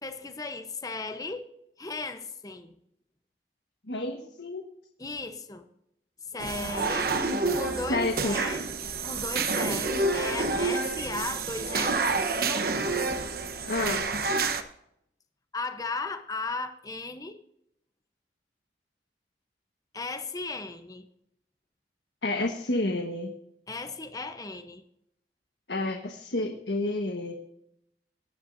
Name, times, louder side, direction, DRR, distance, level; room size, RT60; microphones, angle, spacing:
voice 1, 0.0-1.5 1.8-2.7 5.0-5.6 6.3-7.1 7.5-8.7 9.0-12.7 15.5-17.4 19.9-21.1 23.7-24.8, left 3 dB, 20° left, 8 dB, 0.9 m, -36 dB
voice 2, 3.9-4.7 7.2-7.3 7.9-8.5 13.6-14.1 22.2-23.3 25.7-27.3, left 2 dB, 80° left, 3 dB, 1.4 m, -30 dB
sound 1, 6.4-14.6, right 3 dB, 55° right, 1.1 m, -28 dB
19.5 x 10.0 x 2.7 m, 0.75 s
head